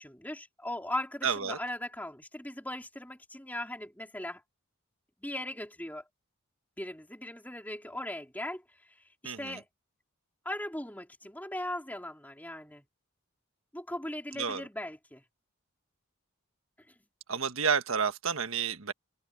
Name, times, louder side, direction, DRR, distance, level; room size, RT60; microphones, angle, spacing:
voice 1, 0.0-4.4 5.2-6.0 6.8-9.7 10.4-12.8 13.7-15.2 16.9-17.0, left 1 dB, 10° left, 4.0 m, -39 dB
voice 2, 1.2-1.6 9.2-9.6 14.4-14.6 17.3-18.9, right 6 dB, 75° right, 1.5 m, -30 dB
head